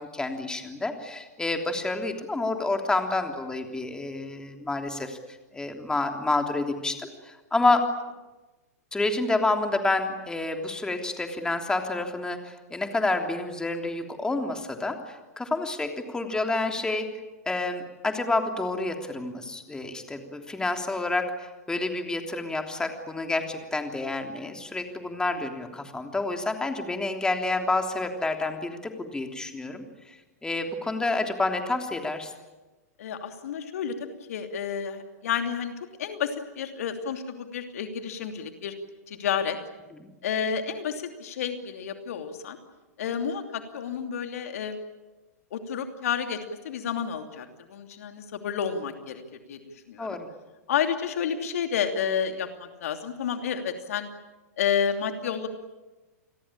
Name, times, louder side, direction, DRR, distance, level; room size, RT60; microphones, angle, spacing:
voice 1, 0.0-5.2 5.5-7.8 8.9-17.1 17.4-30.2 30.4-32.3 40.0-40.1 50.0-50.3, left 2 dB, 10° left, 4 dB, 3.3 m, -29 dB
voice 2, 33.0-38.7 39.1-39.6 40.2-42.6 43.0-44.8 45.5-49.2 49.5-49.6 49.9-50.1 50.7-54.1 54.6-55.5, left 7 dB, 65° left, 6 dB, 2.9 m, -30 dB
29.0 x 21.5 x 8.9 m, 1.1 s
figure-of-eight pair, 105°, 9 cm